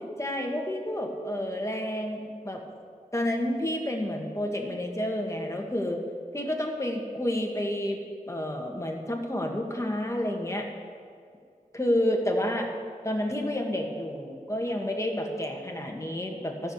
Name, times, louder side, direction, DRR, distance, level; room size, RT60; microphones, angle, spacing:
voice 1, 0.2-2.6 3.1-6.0 6.3-8.0 8.3-10.7 11.7-12.7 13.0-16.7, left 1 dB, 20° left, 1 dB, 1.9 m, -30 dB
13.5 x 6.8 x 8.1 m, 2.3 s
wide cardioid pair, 55°, 14 cm